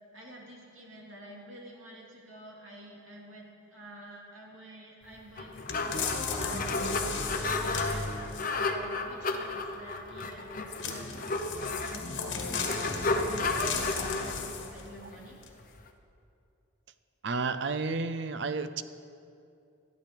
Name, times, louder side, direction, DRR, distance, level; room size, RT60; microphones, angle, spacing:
voice 1, 0.1-8.1 8.5-15.4, equal, 80° right, -2 dB, 2.6 m, -49 dB
sound 1, 5.2-15.9, left 3 dB, 40° left, 0.8 m, -33 dB
sound 2, 5.7-8.7 10.7-14.9 15.4-15.5, left 4 dB, 65° left, 1.5 m, -35 dB
voice 2, 17.2-18.8, right 4 dB, 55° right, 12 dB, 0.5 m, -31 dB
13.0 x 12.0 x 5.2 m, 2.6 s
head